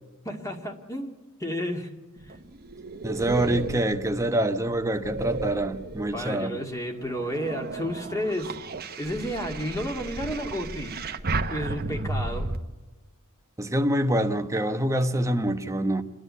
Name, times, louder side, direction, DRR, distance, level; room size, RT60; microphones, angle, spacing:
voice 1, 0.2-1.9 6.1-8.6 9.0-11.0 11.5-12.5, equal, 15° left, 2.3 m, -31 dB
sound 1, 2.2-6.4 6.9-12.6, right 2 dB, 45° right, 1.1 m, -34 dB
voice 2, 3.0-6.5 13.6-16.0, right 1 dB, 15° right, 1.0 m, -25 dB
29.0 x 11.0 x 9.4 m
head